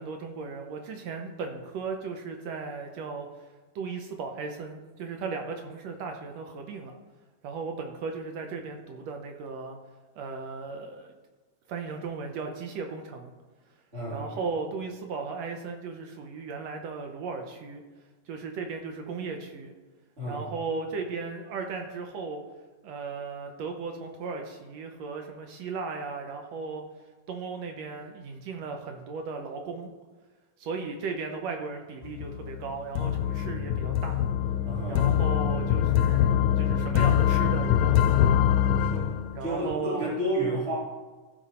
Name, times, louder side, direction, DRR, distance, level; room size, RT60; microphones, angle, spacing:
voice 1, 0.0-3.3 3.8-7.0 7.4-9.8 10.2-11.1 11.7-13.3 14.1-17.8 18.3-19.7 20.3-22.4 22.8-26.9 27.3-29.9 30.6-34.2 34.9-38.4 39.3-40.1, right 4 dB, 70° right, 4 dB, 1.8 m, -36 dB
voice 2, 13.9-14.4 20.2-20.5 34.6-35.1 38.8-40.7, right 1 dB, 20° right, -6 dB, 3.1 m, -31 dB
sound 1, 32.0-39.7, left 9 dB, 80° left, 1.7 m, -24 dB
14.5 x 5.2 x 4.3 m, 1.3 s
omnidirectional pair, 3.7 m